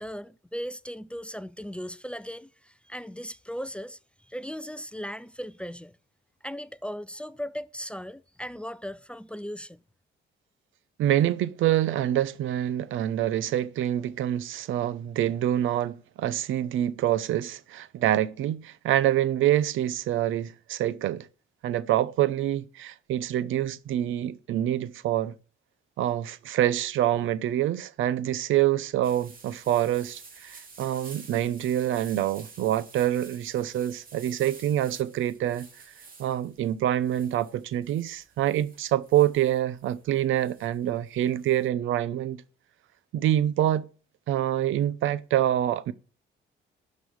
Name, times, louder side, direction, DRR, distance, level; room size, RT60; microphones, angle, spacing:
voice 1, 0.0-6.0 6.4-9.8, equal, 5° left, 0.5 m, -37 dB
voice 2, 11.0-21.3 21.6-25.3 26.0-35.7 36.2-42.4 43.1-43.9 44.3-45.9, right 12 dB, 80° right, 0.8 m, -26 dB
sound 1, 29.0-41.7, right 4 dB, 45° right, 3.1 m, -50 dB
12.0 x 5.4 x 6.3 m
cardioid pair, 90°, 20 cm